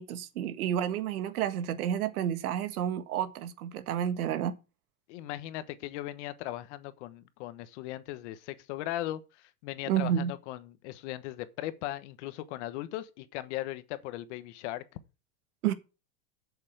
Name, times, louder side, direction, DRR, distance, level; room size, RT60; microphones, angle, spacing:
voice 1, 0.0-4.5 9.9-10.3 15.6-15.7, right 10 dB, 75° right, 1.6 m, -30 dB
voice 2, 5.1-14.8, left 15 dB, 50° left, 1.2 m, -38 dB
8.3 x 6.9 x 8.1 m
supercardioid pair, 150°, 45 cm